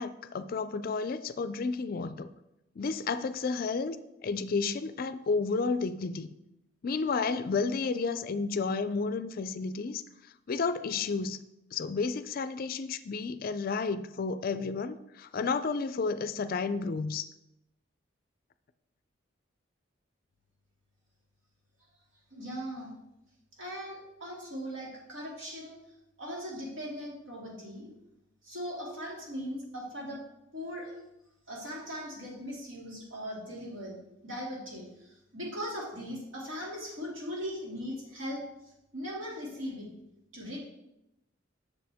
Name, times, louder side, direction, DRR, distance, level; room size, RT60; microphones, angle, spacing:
voice 1, 0.0-2.3 2.8-4.0 4.2-6.3 6.8-11.4 11.7-17.3, left 4 dB, 45° left, 12 dB, 0.4 m, -31 dB
voice 2, 22.3-22.9 23.6-25.8 26.2-27.9 28.4-30.2 30.5-30.9 31.5-33.9 34.2-38.4 38.9-39.9 40.3-40.6, equal, 75° right, -3 dB, 2.4 m, -39 dB
7.7 x 6.3 x 3.5 m, 0.89 s
head